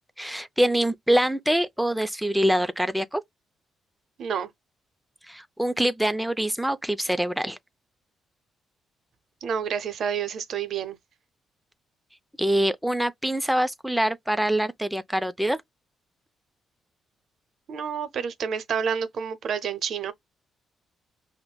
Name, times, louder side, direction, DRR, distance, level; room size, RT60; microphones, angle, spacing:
voice 1, 0.2-3.2 5.3-7.6 12.4-15.6, right 1 dB, 5° right, 0.4 m, -24 dB
voice 2, 4.2-4.5 9.4-11.0 17.7-20.1, right 7 dB, 65° right, 0.6 m, -29 dB
5.5 x 2.1 x 2.2 m
cardioid pair, 90°, 0 cm